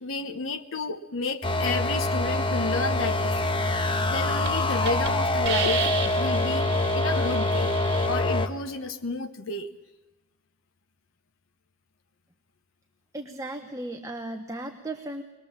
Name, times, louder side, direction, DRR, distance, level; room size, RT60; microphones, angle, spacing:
voice 1, 0.0-5.9 6.1-9.7, left 4 dB, 75° left, 6 dB, 1.1 m, -32 dB
sound 1, 1.4-8.5, left 2 dB, 25° left, 1.2 m, -25 dB
Hiss, 3.9-4.1 4.4-4.5 4.8-5.1 5.4-8.1, right 6 dB, 55° right, 2.0 m, -32 dB
voice 2, 13.1-15.2, right 1 dB, 15° right, 5 dB, 1.0 m, -36 dB
22.5 x 21.0 x 7.4 m, 1.1 s
head